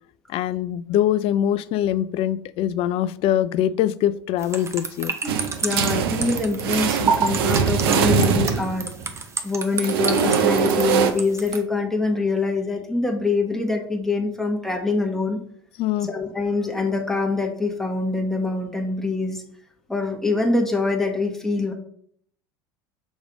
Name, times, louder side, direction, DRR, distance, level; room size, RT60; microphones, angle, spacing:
voice 1, 0.3-5.2 15.8-16.1, left 11 dB, 45° left, 17 dB, 0.4 m, -23 dB
sound 1, 4.4-11.6, right 5 dB, 20° right, 0.8 m, -28 dB
sound 2, 5.3-9.1 9.8-11.1, right 7 dB, 65° right, 0.7 m, -22 dB
voice 2, 5.6-8.9 9.4-15.4 16.1-19.4 19.9-21.7, left 3 dB, 5° left, 1 dB, 1.3 m, -24 dB
6.2 x 3.2 x 4.9 m, 0.64 s
figure-of-eight pair, 75°, 13 cm